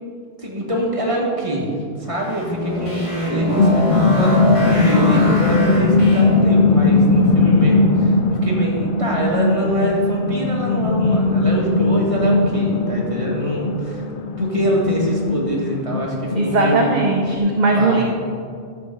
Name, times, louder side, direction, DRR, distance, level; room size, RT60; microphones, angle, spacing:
voice 1, 0.4-14.0 14.4-16.9 17.7-18.0, equal, 30° right, -3 dB, 1.8 m, -24 dB
sound 1, 2.1-6.6, left 1 dB, 30° left, 2.1 m, -24 dB
sound 2, 3.1-17.4, left 3 dB, 55° left, 0.7 m, -19 dB
voice 2, 16.3-18.0, right 3 dB, 45° right, 0 dB, 0.8 m, -18 dB
12.5 x 7.0 x 3.8 m, 2.2 s
omnidirectional pair, 1.1 m